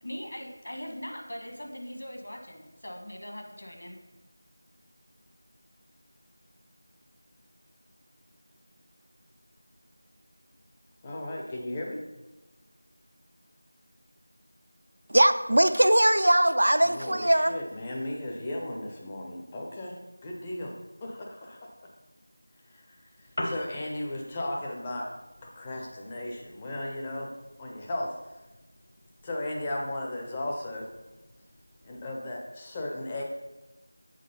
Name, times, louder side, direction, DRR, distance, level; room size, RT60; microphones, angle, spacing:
voice 1, 0.0-4.0, equal, 60° left, 2 dB, 1.5 m, -40 dB
voice 2, 11.0-12.0 16.8-19.9 20.2-20.7 21.0-21.6 22.7-23.0 23.4-25.1 25.4-27.3 27.6-28.1 29.2-30.9 31.8-33.2, left 1 dB, 15° left, -1 dB, 0.6 m, -35 dB
voice 3, 15.1-17.6, right 1 dB, 70° right, 11 dB, 0.5 m, -21 dB
Piano, 23.1-32.1, left 1 dB, 45° left, 0.9 m, -44 dB
7.5 x 3.6 x 5.6 m, 1.0 s
figure-of-eight pair, 175°, 0 cm